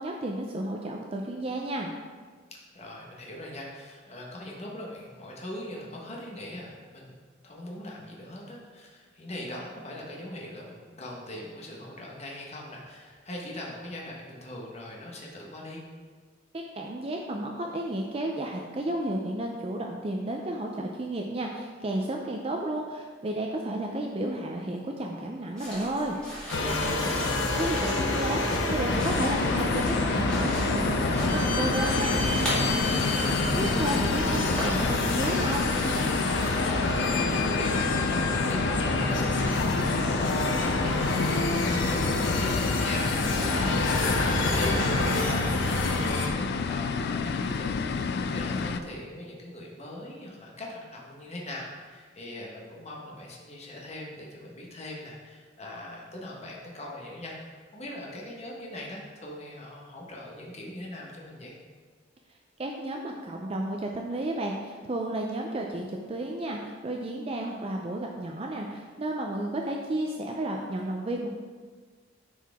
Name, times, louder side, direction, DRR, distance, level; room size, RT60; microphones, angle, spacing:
voice 1, 0.0-1.9 16.8-26.2 27.6-32.2 33.6-35.7 62.6-71.3, right 1 dB, 30° right, 1 dB, 0.4 m, -32 dB
voice 2, 2.7-7.2 7.4-15.8 26.5-27.4 32.7-33.4 36.5-61.6, left 1 dB, 35° left, -2 dB, 1.1 m, -40 dB
sound 1, 25.6-35.9, equal, 5° left, 2.2 m, -39 dB
sound 2, 26.5-46.3, left 2 dB, 70° left, 0.9 m, -27 dB
sound 3, 28.9-48.8, left 5 dB, 55° left, 0.3 m, -30 dB
9.8 x 4.6 x 3.5 m, 1.6 s
head